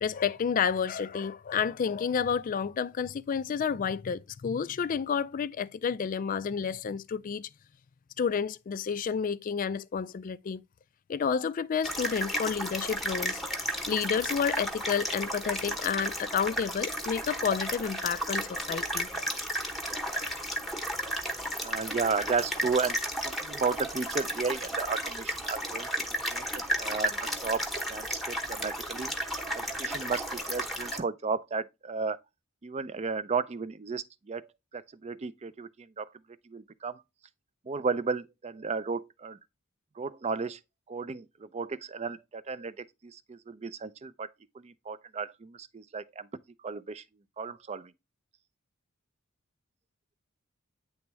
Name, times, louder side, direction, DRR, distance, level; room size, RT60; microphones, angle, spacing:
voice 1, 0.0-7.5 8.2-10.6 11.1-13.4 13.9-19.1, left 6 dB, 40° left, 0.3 m, -30 dB
sound 1, 11.8-31.0, equal, ahead, 0.9 m, -33 dB
voice 2, 21.6-23.0 23.2-25.9 26.3-26.5 26.8-29.1 29.5-32.2 32.6-34.5 34.7-35.7 36.0-36.1 36.5-37.0 37.7-39.4 40.0-40.6 40.9-44.3 44.6-46.3 46.6-47.0 47.4-47.9, right 4 dB, 30° right, 0.4 m, -33 dB
9.4 x 3.5 x 3.0 m
head